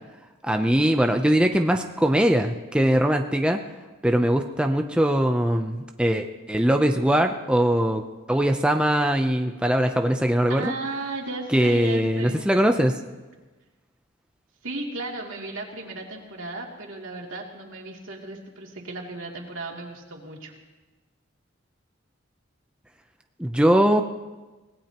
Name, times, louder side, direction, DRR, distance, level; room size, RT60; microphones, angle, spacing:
voice 1, 0.4-3.6 4.0-8.0 8.3-10.7 11.5-13.0 23.4-24.0, right 1 dB, 5° right, 4 dB, 0.6 m, -21 dB
voice 2, 10.5-12.4 14.6-20.5, right 2 dB, 80° right, -1 dB, 2.8 m, -35 dB
24.5 x 18.5 x 3.0 m, 1.2 s
head